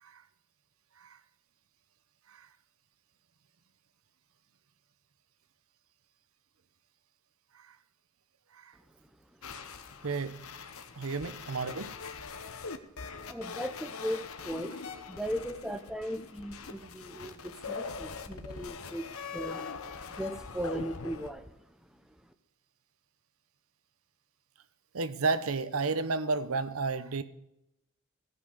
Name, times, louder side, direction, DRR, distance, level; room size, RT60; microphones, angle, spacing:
sound 1, 9.4-21.3, left 5 dB, 90° left, 1.1 m, -42 dB
voice 1, 10.0-10.4 11.0-11.9 24.9-27.2, right 4 dB, 90° right, 13 dB, 0.9 m, -32 dB
voice 2, 13.3-14.7 15.1-19.1 19.3-19.6 20.2-21.5, equal, 5° right, 8 dB, 0.8 m, -37 dB
16.5 x 5.8 x 6.5 m, 0.82 s
head